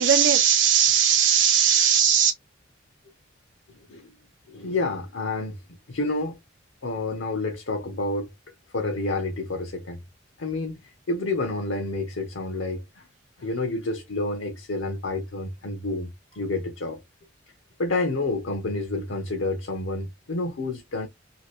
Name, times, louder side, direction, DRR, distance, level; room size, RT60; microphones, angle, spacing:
voice 1, 0.0-2.3, right 8 dB, 60° right, 0.4 m, -19 dB
voice 2, 4.5-5.6 5.9-6.4 6.8-8.3 8.7-10.0 10.4-10.8 11.1-13.1 13.4-17.0 17.8-21.1, left 2 dB, 90° left, 0.7 m, -29 dB
2.8 x 2.5 x 3.0 m
head